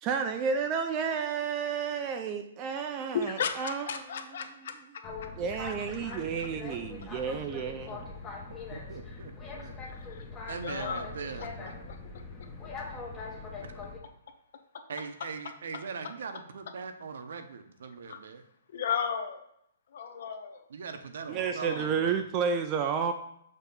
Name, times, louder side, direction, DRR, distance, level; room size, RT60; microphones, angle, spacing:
voice 1, 0.0-3.9 5.4-8.1 21.3-23.1, right 6 dB, 20° right, 6 dB, 0.4 m, -31 dB
voice 2, 2.8-4.7 6.1-6.2 9.8-10.3 10.5-11.1 11.4-11.5 11.8-12.0 18.1-18.2 18.7-19.4 19.9-20.7 21.3-22.0, left 6 dB, 55° left, 7 dB, 0.8 m, -35 dB
Boat Water vehicle, 5.0-14.0, left 4 dB, 15° left, 0.9 m, -42 dB
voice 3, 8.7-9.8 10.5-11.8 14.9-18.4 20.7-22.1, right 5 dB, 65° right, 8 dB, 0.8 m, -41 dB
6.7 x 3.0 x 5.3 m, 0.76 s
hypercardioid pair, 170°, 0 cm